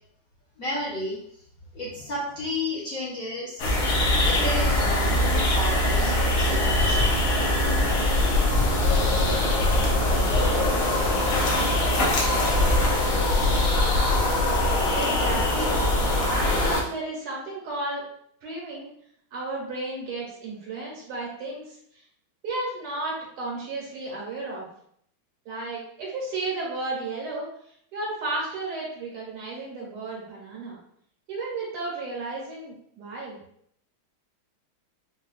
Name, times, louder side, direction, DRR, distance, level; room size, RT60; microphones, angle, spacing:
voice 1, 0.6-1.2 1.7-3.7 4.2-7.8, left 1 dB, 55° left, -7 dB, 1.0 m, -33 dB
sound 1, 3.6-16.8, left 1 dB, 75° left, 1.6 m, -22 dB
voice 2, 14.9-15.8 16.3-18.1 18.4-18.9 19.3-21.8 22.4-24.7 25.5-27.5 27.9-30.8 31.3-33.4, right 2 dB, 85° right, -4 dB, 2.1 m, -33 dB
5.3 x 2.4 x 2.4 m, 0.68 s
omnidirectional pair, 2.3 m